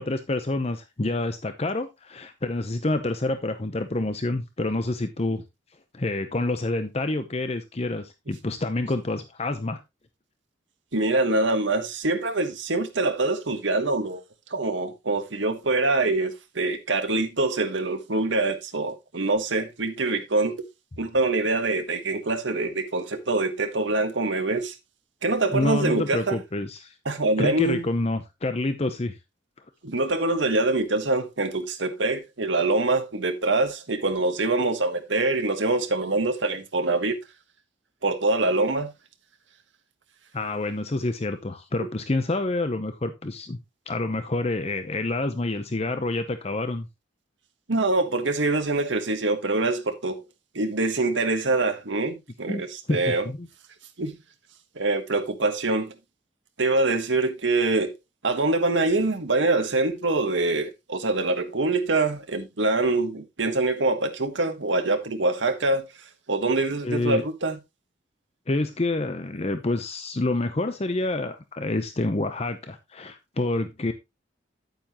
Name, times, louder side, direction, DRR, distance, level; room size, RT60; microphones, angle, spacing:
voice 1, 0.0-5.4 5.9-9.8 25.5-26.9 27.4-29.2 40.3-43.6 43.9-46.9 52.5-52.6 52.9-53.5 66.8-67.3 68.5-73.9, left 2 dB, 35° left, 0.7 m, -28 dB
voice 2, 10.9-14.2 14.5-20.6 21.0-24.7 25.2-26.3 27.0-27.8 29.8-37.1 38.0-38.9 47.7-50.2 50.5-53.2 54.0-54.1 54.7-55.9 56.6-57.9 58.2-65.8 66.3-67.5, right 2 dB, 80° right, 1.5 m, -24 dB
9.5 x 9.0 x 2.9 m
head